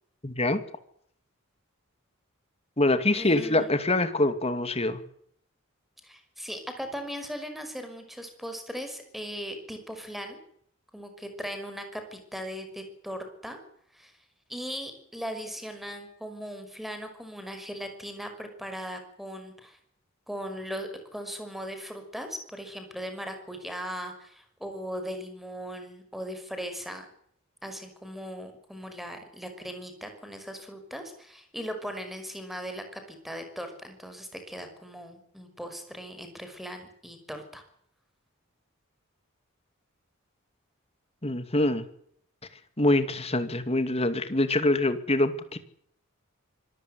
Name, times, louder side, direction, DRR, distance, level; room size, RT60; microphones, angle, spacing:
voice 1, 0.2-0.6 2.8-5.0 41.2-41.9 42.8-45.6, left 2 dB, 30° left, 10 dB, 2.5 m, -25 dB
voice 2, 3.1-3.7 6.0-10.4 10.9-13.6 13.9-14.1 14.5-19.8 20.3-27.1 27.6-37.6, equal, ahead, 6 dB, 5.6 m, -38 dB
25.5 x 14.5 x 9.5 m, 0.66 s
head